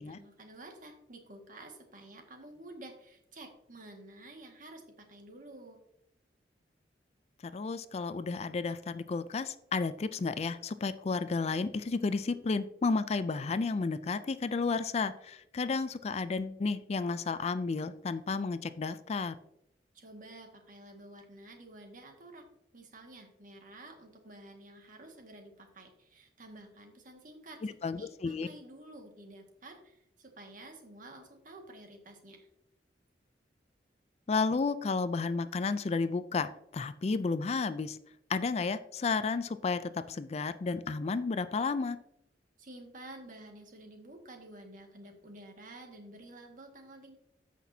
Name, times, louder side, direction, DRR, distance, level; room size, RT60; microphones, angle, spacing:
voice 1, 0.0-5.8 19.9-22.5 22.7-32.5 42.6-47.1, right 1 dB, 50° right, 3 dB, 1.8 m, -51 dB
voice 2, 7.5-19.3 27.6-28.5 34.3-38.0 38.3-42.0, left 4 dB, 35° left, 13 dB, 0.4 m, -32 dB
14.5 x 5.9 x 2.7 m, 0.79 s
head